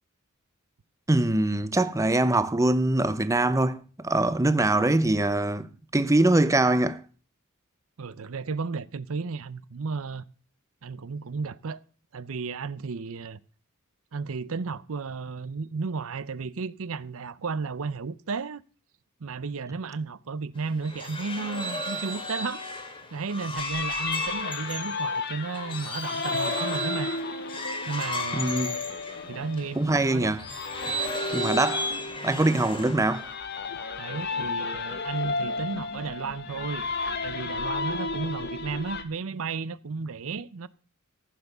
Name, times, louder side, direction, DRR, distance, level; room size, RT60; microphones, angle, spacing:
voice 1, 1.1-7.0 28.3-28.7 29.8-30.4 31.3-32.0 32.2-33.3, right 2 dB, 15° right, 0.6 m, -23 dB
voice 2, 8.0-10.3 10.8-11.8 12.1-13.4 14.1-18.6 19.2-22.6 23.1-27.1 27.9-28.8 29.3-30.4 30.9-31.1 34.0-36.8 37.2-40.7, right 4 dB, 65° right, 0.6 m, -33 dB
sound 1, 20.6-29.7 30.3-33.3, left 1 dB, 25° left, 2.1 m, -34 dB
sound 2, 23.5-39.0, left 3 dB, 50° left, 1.4 m, -33 dB
15.0 x 7.1 x 6.7 m
head